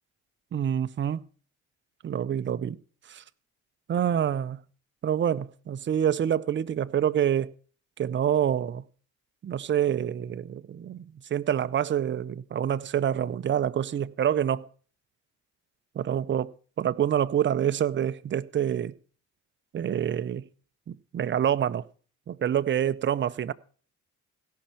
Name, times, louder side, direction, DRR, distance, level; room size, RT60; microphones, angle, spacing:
voice 1, 0.5-1.2 2.0-2.8 3.1-3.2 3.9-4.6 5.0-7.5 8.0-8.8 9.4-11.0 11.3-14.7 16.0-16.5 16.8-18.9 19.7-20.4 20.9-21.8 22.3-23.5, right 9 dB, 40° right, 0.6 m, -26 dB
16.5 x 5.7 x 5.7 m
cardioid pair, 90°, 30 cm